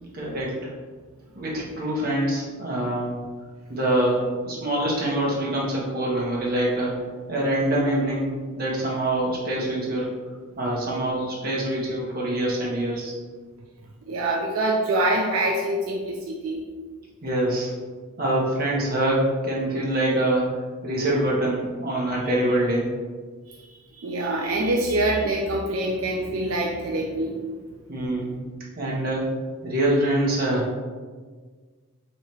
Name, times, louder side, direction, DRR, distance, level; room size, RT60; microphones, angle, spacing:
voice 1, 0.1-0.7 1.3-3.1 3.7-7.0 7.3-8.3 8.6-10.1 10.6-13.1 17.2-17.7 18.2-22.9 27.9-28.3 28.8-29.3 29.6-30.8, right 1 dB, 40° right, -5 dB, 1.0 m, -25 dB
voice 2, 14.1-16.6 23.5-23.6 24.0-27.5, right 1 dB, 75° right, -1 dB, 0.4 m, -25 dB
3.1 x 2.8 x 4.4 m, 1.5 s
head